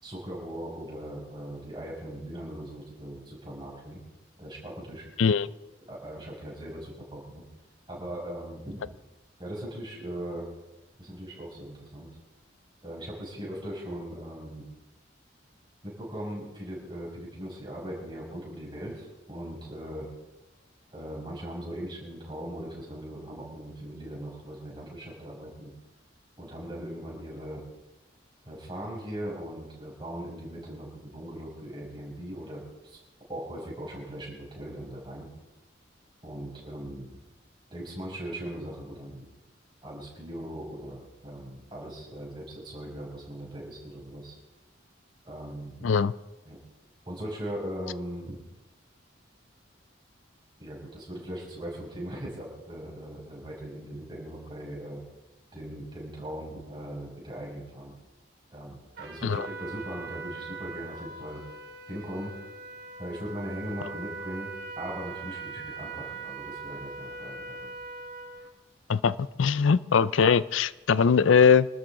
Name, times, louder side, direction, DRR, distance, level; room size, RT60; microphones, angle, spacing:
voice 1, 0.0-4.0 4.4-5.1 5.9-7.4 7.9-8.8 9.4-10.4 11.0-12.1 12.8-14.7 15.8-20.1 20.9-25.7 26.4-27.6 28.4-33.0 33.3-35.3 36.2-37.1 37.7-39.2 39.8-44.3 45.2-45.9 46.5-46.6 47.0-48.4 50.6-55.0 55.5-57.9 58.5-61.4 61.9-62.4 63.0-64.5 64.8-67.7, right 1 dB, 25° right, -3 dB, 6.0 m, -39 dB
voice 2, 45.8-46.1 59.2-59.5 68.9-71.7, left 6 dB, 85° left, 18 dB, 0.5 m, -21 dB
Trumpet, 58.9-68.5, right 4 dB, 55° right, 3.2 m, -41 dB
26.0 x 13.0 x 3.9 m, 1.1 s
head